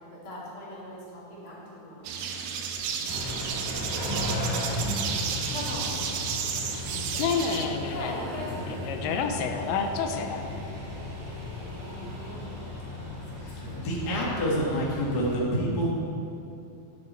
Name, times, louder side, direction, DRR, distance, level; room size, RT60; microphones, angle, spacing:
voice 1, 0.2-2.6 4.5-4.9 5.5-7.5 7.9-8.6 11.8-12.5 12.8-13.4 13.7-14.0, left 1 dB, 40° left, -7 dB, 2.7 m, -41 dB
sound 1, 2.0-7.7, right 7 dB, 85° right, 2.7 m, -32 dB
Car / Idling / Accelerating revving vroom, 3.1-15.4, left 1 dB, 20° right, 0.5 m, -35 dB
voice 2, 7.2-10.5, left 5 dB, 85° left, 5 dB, 2.6 m, -30 dB
voice 3, 13.4-15.9, equal, 70° left, -4 dB, 0.9 m, -28 dB
9.8 x 7.9 x 4.4 m, 2.8 s
omnidirectional pair, 4.4 m